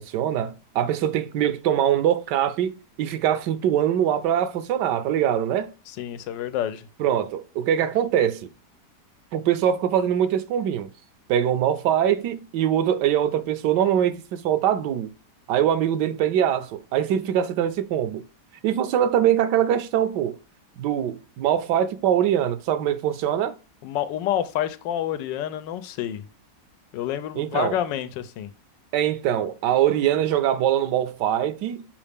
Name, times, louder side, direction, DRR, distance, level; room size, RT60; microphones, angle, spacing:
voice 1, 0.0-5.7 7.0-8.5 9.3-10.9 11.3-15.1 15.5-18.2 18.6-20.4 20.8-23.6 27.4-27.8 28.9-31.9, right 10 dB, 75° right, 1.1 m, -23 dB
voice 2, 6.0-6.9 23.8-26.2 26.9-28.5, left 11 dB, 90° left, 1.3 m, -28 dB
5.5 x 4.9 x 3.5 m
omnidirectional pair, 1.9 m